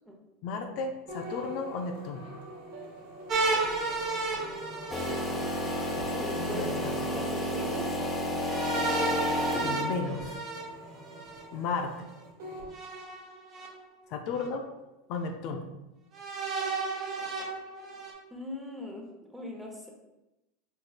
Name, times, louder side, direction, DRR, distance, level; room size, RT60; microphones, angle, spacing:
voice 1, 0.4-2.3 6.4-7.2 9.6-10.4 11.5-12.1 14.1-14.7 15.1-15.7, left 4 dB, 60° left, 4 dB, 0.4 m, -34 dB
sound 1, 1.1-12.7, right 1 dB, 75° right, 1.2 m, -44 dB
sound 2, 3.3-6.0 8.4-11.4 12.7-13.7 14.4-14.5 16.1-18.1, right 3 dB, 35° right, 0.9 m, -32 dB
sound 3, 4.9-10.1, left 1 dB, 20° left, 0.7 m, -31 dB
voice 2, 6.1-6.6 7.0-8.0 18.3-19.9, left 1 dB, 5° right, 0 dB, 0.8 m, -40 dB
4.4 x 3.1 x 2.4 m, 0.98 s
hypercardioid pair, 105°, 0 cm